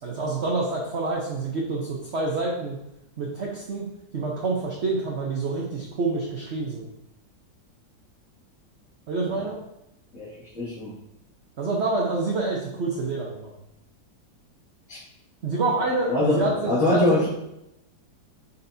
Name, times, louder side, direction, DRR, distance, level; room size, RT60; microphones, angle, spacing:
voice 1, 0.0-2.8 3.2-3.8 4.1-6.9 9.1-9.6 11.6-13.5 15.4-17.2, right 3 dB, 50° right, -2 dB, 0.9 m, -27 dB
voice 2, 10.5-10.9 14.9-15.0 16.1-17.3, left 2 dB, 70° left, -11 dB, 3.0 m, -23 dB
9.4 x 4.2 x 2.7 m, 0.85 s
omnidirectional pair, 2.0 m